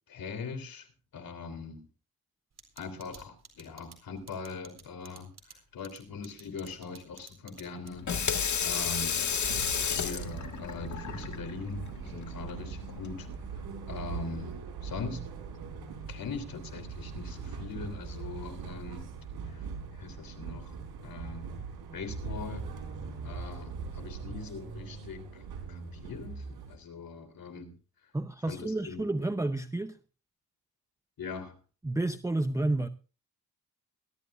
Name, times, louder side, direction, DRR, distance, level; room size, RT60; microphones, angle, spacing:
voice 1, 0.1-0.9 1.1-1.8 2.8-8.1 8.6-9.3 9.9-13.3 13.5-14.6 14.8-15.2 16.1-19.1 19.5-19.6 19.9-20.8 21.0-21.5 21.9-22.7 23.2-27.7 28.5-29.4 31.2-31.6, left 4 dB, 65° left, 3.4 m, -41 dB
sound 1, 2.6-10.5, right 5 dB, 45° right, 4.1 m, -52 dB
Water tap faucet / Sink (filling or washing), 7.9-13.4, left 7 dB, 50° left, 1.7 m, -33 dB
sound 2, 9.4-26.8, right 5 dB, 85° right, 4.0 m, -41 dB
voice 2, 28.1-30.0 31.8-32.9, right 2 dB, 10° right, 0.6 m, -30 dB
22.0 x 13.0 x 2.5 m
cardioid pair, 95°, 37 cm